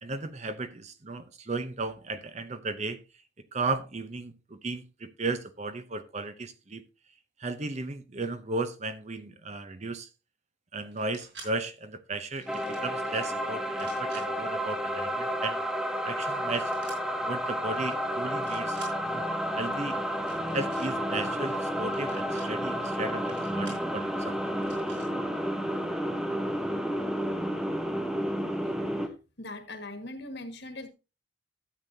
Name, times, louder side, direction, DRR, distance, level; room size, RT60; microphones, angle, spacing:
voice 1, 0.0-3.0 3.5-6.8 7.4-10.1 10.7-15.6 16.0-16.7 17.2-19.3 19.5-20.0 20.5-24.6, right 3 dB, 35° right, 0.7 m, -35 dB
sound 1, 10.9-11.5 12.3-12.9 13.7-14.2 16.7-17.0 17.7-17.9 18.3-18.9 20.2-20.9 21.9-22.5 23.3-23.8 24.6-25.1, right 3 dB, 60° right, 4.6 m, -49 dB
sound 2, 12.5-29.1, equal, ahead, 0.8 m, -31 dB
voice 2, 29.4-30.9, left 2 dB, 55° left, 1.7 m, -41 dB
12.5 x 8.2 x 2.7 m
head